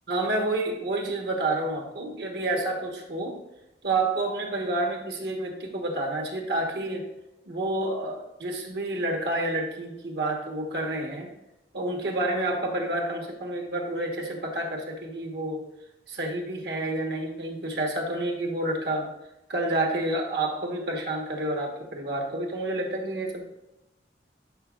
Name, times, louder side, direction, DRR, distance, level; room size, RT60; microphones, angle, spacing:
voice 1, 0.1-3.4 3.8-7.0 7.5-11.3 11.7-15.6 16.1-19.1 19.5-23.4, right 2 dB, 70° right, 2 dB, 1.3 m, -29 dB
11.0 x 5.0 x 2.4 m, 0.91 s
head